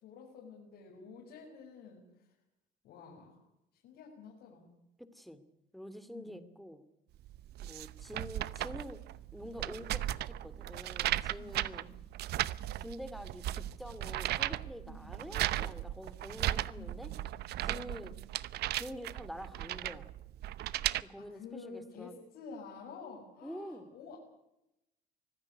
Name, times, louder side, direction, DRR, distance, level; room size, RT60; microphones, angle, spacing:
voice 1, 0.0-2.1 2.8-3.4 3.7-4.7 6.1-6.4 11.4-11.9 12.6-12.8 14.8-15.4 16.7-17.4 17.7-18.3 21.2-24.2, left 5 dB, 80° left, -2 dB, 6.4 m, -50 dB
voice 2, 5.0-5.4 5.7-6.8 7.6-9.0 9.3-11.8 12.8-17.1 17.6-18.1 18.8-20.1 21.0-22.2 23.4-23.9, equal, ahead, 12 dB, 2.5 m, -46 dB
sound 1, 7.3-21.0, right 14 dB, 75° right, 0.8 m, -36 dB
24.5 x 15.5 x 10.0 m, 0.88 s
cardioid pair, 110°, 17 cm